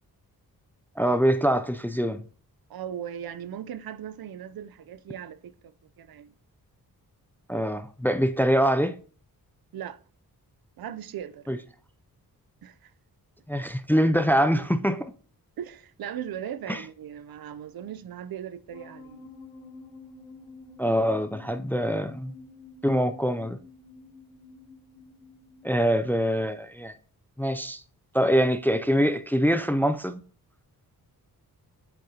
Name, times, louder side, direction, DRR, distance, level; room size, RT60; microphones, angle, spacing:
voice 1, 1.0-2.2 7.5-8.9 11.5-11.6 13.5-15.1 16.7-16.8 20.8-22.3 22.8-23.6 25.6-26.9 27.4-27.8 28.1-30.2, equal, 5° left, 0.4 m, -24 dB
voice 2, 2.7-6.3 9.7-10.0 10.8-11.4 12.6-12.9 15.6-19.3, right 9 dB, 75° right, 0.6 m, -38 dB
sound 1, 18.7-26.1, left 3 dB, 90° left, 2.8 m, -49 dB
8.2 x 6.4 x 2.8 m
wide cardioid pair, 100°, 37 cm